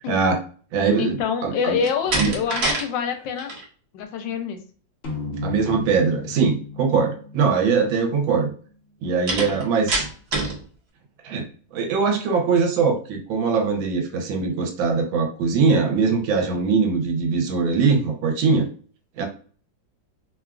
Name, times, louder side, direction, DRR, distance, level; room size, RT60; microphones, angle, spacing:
voice 1, 0.1-0.4 0.7-1.8 2.1-2.3 5.4-8.5 9.0-10.1 11.2-11.4 11.7-18.7 19.2-19.3, right 5 dB, 90° right, 3 dB, 1.5 m, -21 dB
voice 2, 1.0-3.5 3.9-4.6, left 6 dB, 75° left, 5 dB, 1.2 m, -26 dB
Slam, 1.8-2.9 3.2-3.6 9.3-10.6, right 2 dB, 55° right, 0.7 m, -25 dB
sound 1, 5.0-8.5, left 3 dB, 60° left, 0.6 m, -34 dB
3.3 x 2.4 x 2.3 m, 0.42 s
omnidirectional pair, 2.1 m